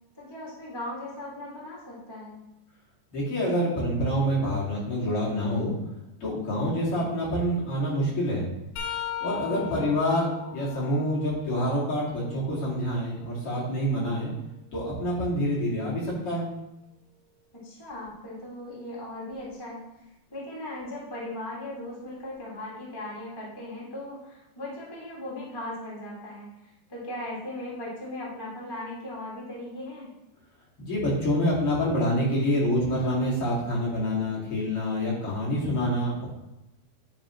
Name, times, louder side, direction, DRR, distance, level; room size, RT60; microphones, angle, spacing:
voice 1, 0.1-2.4 9.5-9.9 17.5-19.9 20.3-30.1, left 1 dB, 15° left, -6 dB, 0.7 m, -38 dB
voice 2, 3.1-5.7 6.2-8.4 9.2-14.3 14.7-16.5 30.8-36.3, equal, 40° left, -6 dB, 2.8 m, -27 dB
sound 1, 8.8-12.5 13.0-15.0 17.9-18.1 19.3-19.5 20.8-20.9, left 8 dB, 85° left, 3.5 m, -40 dB
10.0 x 5.2 x 3.1 m, 0.95 s
omnidirectional pair, 4.7 m